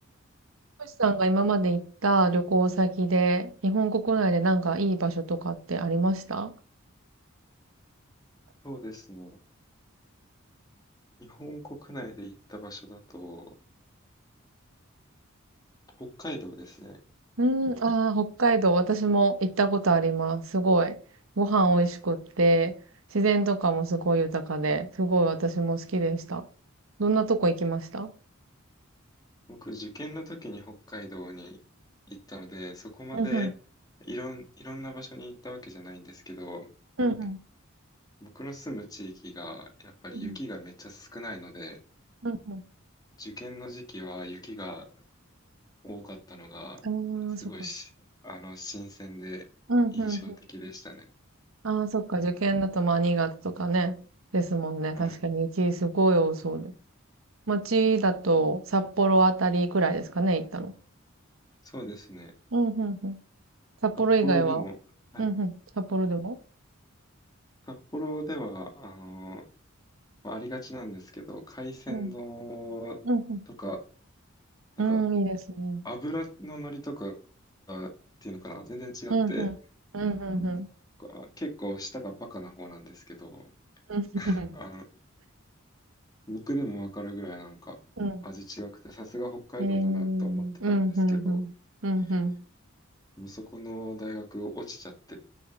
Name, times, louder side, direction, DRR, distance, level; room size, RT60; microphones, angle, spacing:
voice 1, 0.8-6.5 17.4-21.0 21.4-22.7 23.1-26.4 27.0-28.1 33.1-33.5 37.0-37.4 40.1-40.4 42.2-42.6 46.8-47.5 49.7-50.3 51.6-54.0 54.3-56.7 57.5-60.7 62.5-63.2 63.8-64.6 65.2-66.4 71.9-72.1 73.1-73.4 74.8-75.8 79.1-79.5 79.9-80.7 83.9-84.5 88.0-88.2 89.6-91.5 91.8-92.4, right 2 dB, 80° right, 1.1 m, -25 dB
voice 2, 8.6-9.4 11.2-13.5 16.0-17.0 29.5-31.6 32.1-33.5 34.1-36.7 38.2-41.8 43.2-44.9 45.8-46.8 47.4-47.9 48.2-49.4 49.9-51.1 54.9-55.1 61.6-62.3 64.0-64.7 65.1-65.3 67.6-69.4 70.2-73.0 73.5-73.8 74.8-75.0 75.8-77.2 77.7-77.9 78.2-79.5 81.0-83.4 84.2-84.8 86.3-87.8 88.2-91.4 92.0-92.1 93.2-95.2, equal, 20° left, 2.2 m, -39 dB
6.5 x 6.3 x 6.6 m
head